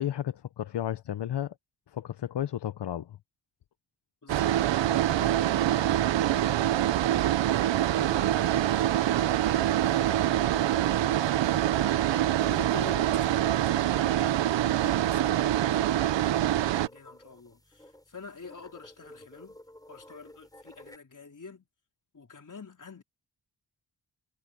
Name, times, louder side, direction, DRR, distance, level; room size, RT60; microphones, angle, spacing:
voice 1, 0.0-1.5 1.9-3.2, left 11 dB, 70° left, 0.9 m, -33 dB
voice 2, 4.2-7.0 7.5-14.4 14.8-19.6 19.9-21.7 22.1-23.0, left 4 dB, 45° left, 4.0 m, -48 dB
sound 1, 4.3-21.0, left 1 dB, 10° left, 7.0 m, -53 dB
sound 2, 4.3-16.9, right 12 dB, 90° right, 0.7 m, -25 dB
cardioid pair, 50°, 43 cm